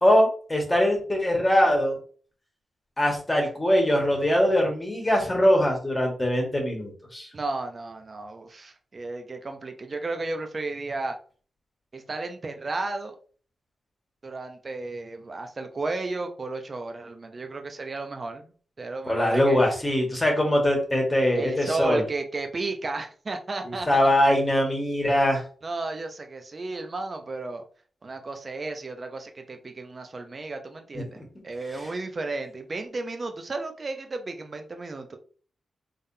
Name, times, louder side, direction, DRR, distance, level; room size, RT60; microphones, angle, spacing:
voice 1, 0.0-2.0 3.0-7.3 19.1-22.0 23.6-25.4 31.2-31.3, left 1 dB, 20° left, 0 dB, 1.7 m, -22 dB
voice 2, 7.3-11.2 11.9-13.1 14.2-19.6 21.3-24.1 25.6-27.6 28.0-35.2, right 3 dB, 45° right, 6 dB, 0.7 m, -33 dB
3.7 x 3.5 x 2.8 m, 0.43 s
cardioid pair, 55°, 0 cm